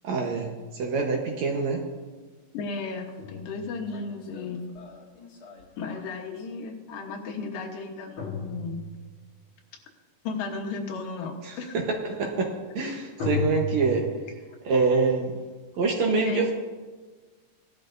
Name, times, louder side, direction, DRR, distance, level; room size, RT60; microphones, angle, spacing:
voice 1, 0.0-0.5 0.8-1.9 11.4-14.1 14.7-15.3 15.8-16.5, right 4 dB, 65° right, 1 dB, 2.0 m, -25 dB
sound 1, 1.8-1.9 2.8-6.4 8.2-9.3 13.2-13.9, left 3 dB, 50° left, 1.8 m, -35 dB
voice 2, 2.5-4.7 5.8-8.8 10.2-11.8 16.1-16.5, left 4 dB, 75° left, 2 dB, 2.8 m, -34 dB
18.5 x 12.0 x 2.6 m, 1.3 s
omnidirectional pair, 4.1 m